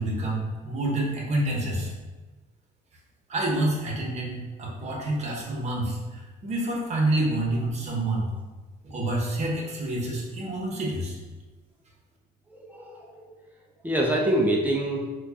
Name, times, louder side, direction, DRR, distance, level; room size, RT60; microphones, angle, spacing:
voice 1, 0.0-1.9 3.3-8.3 8.8-11.2, right 1 dB, 40° right, -2 dB, 0.9 m, -28 dB
voice 2, 12.5-13.3 13.8-15.1, right 1 dB, 10° right, -3 dB, 0.5 m, -25 dB
4.4 x 2.3 x 2.7 m, 1.3 s
cardioid pair, 110°, 17 cm